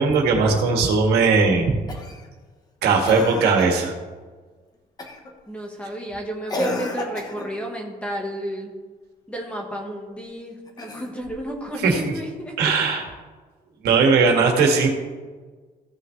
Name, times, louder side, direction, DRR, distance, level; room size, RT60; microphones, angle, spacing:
voice 1, 0.0-1.8 2.8-3.9 11.8-12.1 12.6-13.1 13.8-14.9, right 4 dB, 90° right, 2 dB, 1.8 m, -18 dB
Cough, 1.9-2.3 3.0-3.8 5.0-5.3 6.5-7.6 10.7-11.5 12.9-13.0, left 1 dB, 25° left, 1.1 m, -31 dB
voice 2, 5.5-8.7 9.3-12.5, right 1 dB, 5° left, 1 dB, 1.4 m, -32 dB
15.5 x 6.3 x 3.3 m, 1.4 s
cardioid pair, 165°, 16 cm